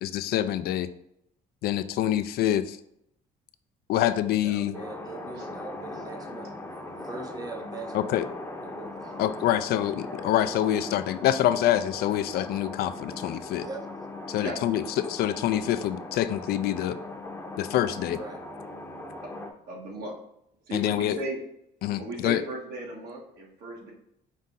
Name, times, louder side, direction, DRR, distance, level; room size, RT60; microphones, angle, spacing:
voice 1, 0.0-0.9 1.6-2.8 3.9-4.8 7.9-8.3 9.2-13.7 14.3-17.0 17.6-18.2 20.7-21.2 21.8-22.4, left 12 dB, 70° left, 11 dB, 0.4 m, -26 dB
voice 2, 4.4-6.5 7.0-8.2 8.6-9.2 13.6-13.8 18.1-18.4, right 3 dB, 20° right, 4 dB, 0.7 m, -41 dB
sound 1, 4.7-19.5, left 2 dB, 15° left, 0.7 m, -39 dB
voice 3, 19.7-20.2 20.7-21.4 22.0-23.9, right 1 dB, 75° right, -2 dB, 1.7 m, -36 dB
5.3 x 2.7 x 3.7 m, 0.76 s
cardioid pair, 110°, 17 cm